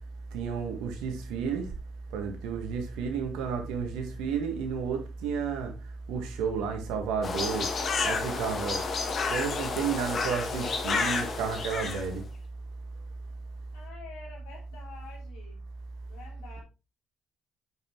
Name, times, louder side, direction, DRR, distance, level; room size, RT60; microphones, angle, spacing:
voice 1, 0.3-1.7 2.1-5.7 6.1-7.7 8.0-8.8 9.3-12.2, right 6 dB, 80° right, 1.7 m, -31 dB
sound 1, 7.2-12.1, left 4 dB, 55° left, 1.6 m, -30 dB
voice 2, 13.7-15.6 16.1-16.6, left 4 dB, 85° left, 3.0 m, -48 dB
7.8 x 5.7 x 3.0 m
supercardioid pair, 60°, 0 cm